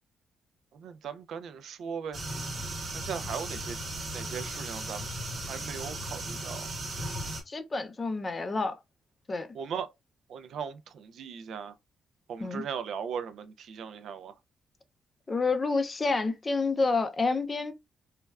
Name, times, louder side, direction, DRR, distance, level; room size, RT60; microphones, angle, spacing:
voice 1, 0.7-2.2 2.9-3.8 4.1-5.0 5.3-6.7 9.5-9.9 10.3-11.7 12.3-14.3, right 7 dB, 70° right, 0.3 m, -38 dB
sound 1, 2.1-7.4, right 1 dB, 40° right, 0.8 m, -36 dB
voice 2, 7.5-8.8 9.3-9.5 12.4-12.6 15.3-17.7, left 3 dB, 25° left, 0.4 m, -28 dB
3.2 x 2.3 x 2.2 m
cardioid pair, 150°, 0 cm